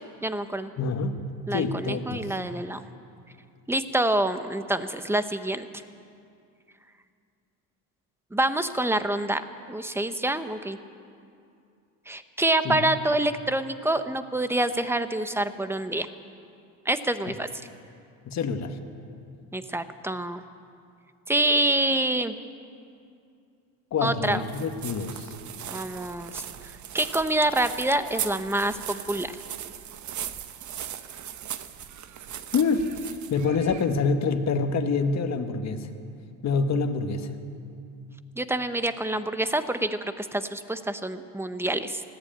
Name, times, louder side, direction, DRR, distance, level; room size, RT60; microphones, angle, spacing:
voice 1, 0.2-0.7 1.5-2.8 3.7-5.7 8.3-9.4 9.7-10.8 12.1-16.1 16.8-17.5 19.5-20.4 21.3-22.3 24.0-24.4 25.7-26.4 26.9-29.3 38.4-42.0, right 1 dB, 5° right, 10 dB, 1.0 m, -26 dB
voice 2, 0.8-1.2 1.5-2.2 12.6-12.9 18.2-18.8 23.9-25.3 32.5-35.9 36.4-37.3, left 4 dB, 45° left, 6 dB, 1.5 m, -26 dB
sound 1, 24.2-34.1, right 10 dB, 50° right, 1.1 m, -38 dB
19.5 x 15.0 x 8.9 m, 2.4 s
cardioid pair, 105°, 37 cm